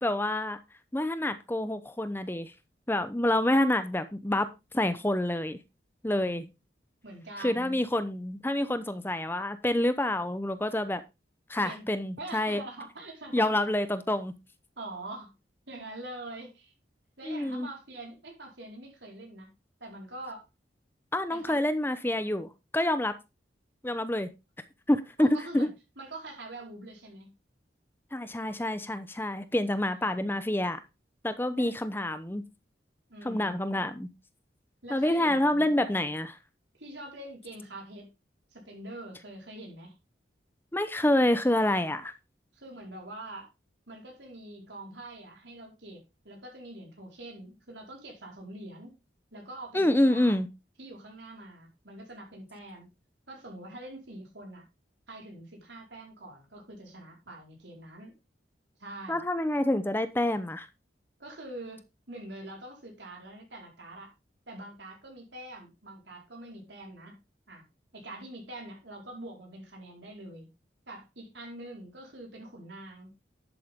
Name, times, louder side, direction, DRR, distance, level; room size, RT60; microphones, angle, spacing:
voice 1, 0.0-0.6 0.9-2.5 2.9-4.5 4.7-5.6 6.0-6.5 7.4-11.0 11.5-12.6 13.3-14.3 17.2-17.7 21.1-23.1 23.8-24.3 24.9-25.3 25.5-25.7 28.1-30.8 31.2-32.4 33.2-34.1 34.9-36.4 40.7-42.1 49.7-50.5 59.1-60.7, left 1 dB, 10° left, 12 dB, 0.7 m, -27 dB
voice 2, 6.1-6.5 7.0-7.8 11.6-11.9 12.2-13.6 14.8-15.3 15.7-16.7 17.2-19.5 19.8-20.4 21.3-21.6 25.2-25.7 26.0-27.3 29.8-30.5 31.5-31.7 33.1-33.8 34.8-35.7 36.7-38.1 38.5-39.9 42.5-43.5 43.9-48.9 49.3-50.3 50.8-52.9 53.3-54.6 55.1-58.1 58.8-59.2 61.2-64.1 64.5-67.2 67.5-67.6 67.9-70.5 70.9-73.1, right 1 dB, 85° right, 1 dB, 4.7 m, -44 dB
11.0 x 8.4 x 3.6 m, 0.25 s
head